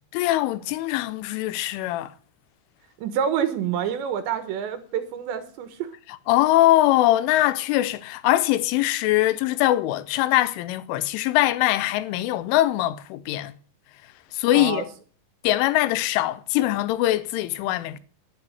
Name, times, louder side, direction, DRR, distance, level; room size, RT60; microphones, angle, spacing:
voice 1, 0.1-2.1 6.3-13.5 14.3-14.9 15.4-18.0, left 15 dB, 85° left, 3.3 m, -22 dB
voice 2, 3.0-5.9 14.5-14.9, right 8 dB, 70° right, 3.3 m, -27 dB
11.0 x 9.4 x 8.2 m
omnidirectional pair, 5.6 m